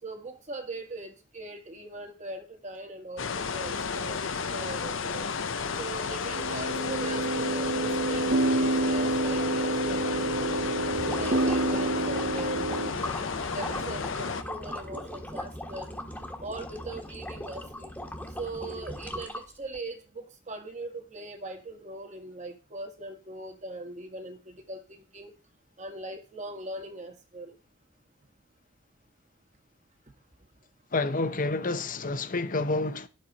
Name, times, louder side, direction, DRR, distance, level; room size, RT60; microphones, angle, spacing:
voice 1, 0.0-5.3 5.8-10.6 11.1-12.7 13.5-15.9 16.4-17.9 18.4-25.3 25.8-27.6, right 2 dB, 40° right, 1.8 m, -41 dB
sound 1, 3.2-14.4, left 5 dB, 90° left, 0.8 m, -32 dB
sound 2, 6.3-12.9, right 2 dB, 60° right, 0.9 m, -28 dB
sound 3, 10.8-19.8, left 1 dB, 10° left, 1.5 m, -39 dB
voice 2, 30.9-33.1, left 3 dB, 45° left, 0.9 m, -29 dB
10.5 x 7.4 x 4.2 m
head